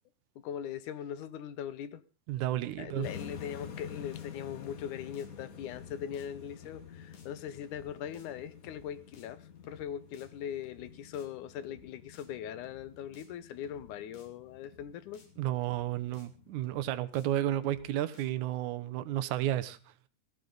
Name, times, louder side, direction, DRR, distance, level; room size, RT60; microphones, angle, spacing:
voice 1, 0.4-2.0 2.8-15.2, left 9 dB, 90° left, 14 dB, 2.5 m, -40 dB
voice 2, 2.3-3.1 15.4-19.8, right 13 dB, 80° right, 12 dB, 2.3 m, -32 dB
sound 1, 2.6-2.9 3.1-3.3 3.6-3.9 4.1-4.3 4.6-4.9 5.1-5.3 5.6-5.9 6.1-6.3 6.6-6.9 7.1-7.3 7.6-7.9 8.1-8.3 8.6-8.9 9.1-9.3 9.6-9.9 10.1-10.3 10.6-10.9 11.1-11.3 11.6-11.9 12.1-12.3 12.6-12.9 13.1-13.3 13.6-13.9 14.1-14.3 14.6-14.9 15.1-15.3 15.6-15.9 16.1-16.3 16.6-16.9 17.1-17.3 17.6-17.9 18.1-18.3, left 4 dB, 75° left, 4.1 m, -59 dB
sound 2, 3.0-17.0, left 7 dB, 55° left, 0.9 m, -49 dB
18.5 x 14.0 x 3.9 m, 0.32 s
omnidirectional pair, 3.4 m